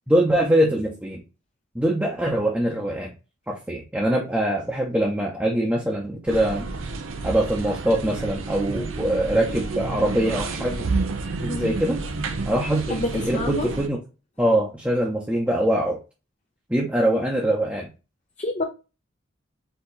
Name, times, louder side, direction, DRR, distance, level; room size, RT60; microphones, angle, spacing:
voice 1, 0.1-1.2 1.7-3.1 3.5-6.7 7.2-10.8 11.4-12.0 12.5-14.0 14.4-16.0 16.7-17.9, right 1 dB, 5° right, 0.7 m, -23 dB
sound 1, 6.3-13.9, right 3 dB, 80° right, 0.7 m, -30 dB
voice 2, 12.9-13.7 18.4-18.6, left 2 dB, 35° left, 0.6 m, -27 dB
4.6 x 2.9 x 4.0 m
head